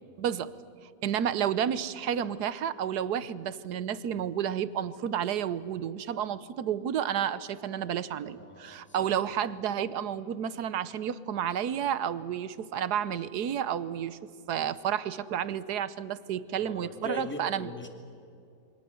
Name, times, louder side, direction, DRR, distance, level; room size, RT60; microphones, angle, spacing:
voice 1, 0.2-0.5 1.0-17.7, right 9 dB, 75° right, 15 dB, 1.4 m, -31 dB
voice 2, 8.4-9.1 16.6-17.9, left 1 dB, 5° left, 4 dB, 2.4 m, -40 dB
28.0 x 24.0 x 7.1 m, 2.6 s
omnidirectional pair, 1.7 m